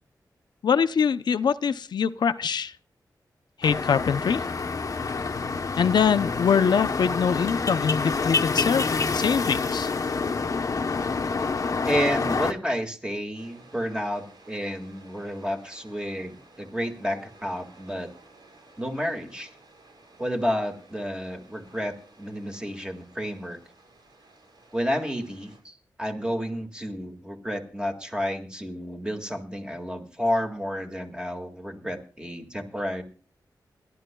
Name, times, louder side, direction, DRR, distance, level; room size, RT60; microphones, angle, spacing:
voice 1, 0.6-2.7 3.6-4.4 5.8-9.9, left 7 dB, 80° left, 11 dB, 0.6 m, -23 dB
sound 1, 3.6-12.5, left 4 dB, 50° left, 0.8 m, -27 dB
voice 2, 11.9-18.1 18.8-19.5 20.2-23.6 24.7-33.0, equal, 10° right, 4 dB, 1.9 m, -30 dB
sound 2, 13.3-25.6, right 2 dB, 80° right, 6.5 m, -54 dB
28.5 x 11.5 x 2.3 m, 0.40 s
wide cardioid pair, 180°, 7 cm